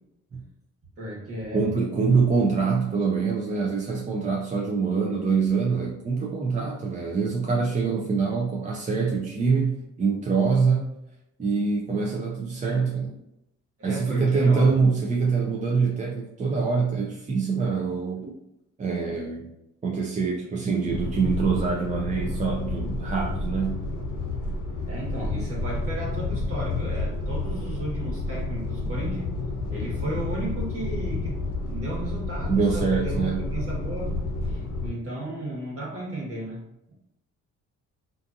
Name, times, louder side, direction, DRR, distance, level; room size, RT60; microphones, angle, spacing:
voice 1, 1.0-1.7 13.8-14.7 24.9-29.3 29.7-31.4 31.7-34.2 34.4-36.6 36.9-37.0, right 1 dB, 50° right, -3 dB, 1.3 m, -34 dB
voice 2, 1.5-10.9 11.4-13.1 13.8-18.3 18.8-19.5 19.8-23.8 32.5-33.4, right 5 dB, 25° right, -1 dB, 0.4 m, -24 dB
sound 1, 20.9-34.9, left 2 dB, 70° left, 0.7 m, -30 dB
2.6 x 2.4 x 2.5 m, 0.82 s
cardioid pair, 90°, 30 cm